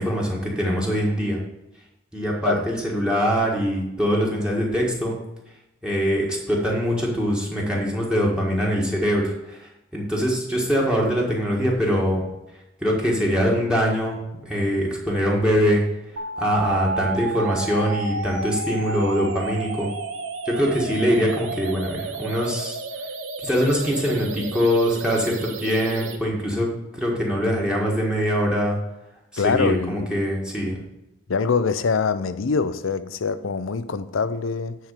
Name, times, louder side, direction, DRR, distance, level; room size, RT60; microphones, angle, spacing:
voice 1, 0.0-1.4 2.1-5.2 5.8-12.2 12.8-14.1 14.4-15.8 16.4-19.9 20.4-22.8 23.4-26.7 26.9-28.8 29.3-30.8, equal, 5° right, 1.6 m, -23 dB
sound 1, 16.2-26.2, right 3 dB, 80° right, 0.9 m, -32 dB
voice 2, 29.4-30.1 30.5-30.8 31.3-34.8, left 5 dB, 90° left, 0.6 m, -24 dB
9.2 x 4.3 x 6.7 m
head